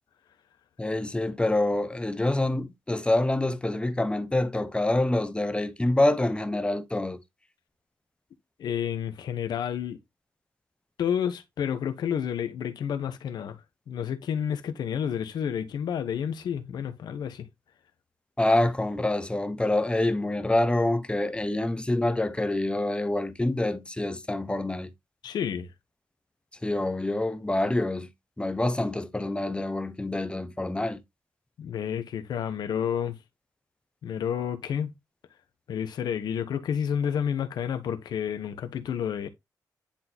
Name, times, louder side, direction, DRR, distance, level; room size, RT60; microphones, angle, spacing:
voice 1, 0.8-7.2 18.4-24.9 26.6-28.1 28.4-31.0, left 1 dB, 15° left, 1.1 m, -26 dB
voice 2, 8.6-10.0 11.0-17.5 25.2-25.7 31.6-33.2 34.0-34.9 35.7-39.3, left 8 dB, 80° left, 1.0 m, -30 dB
10.0 x 4.0 x 2.9 m
cardioid pair, 70°, 7 cm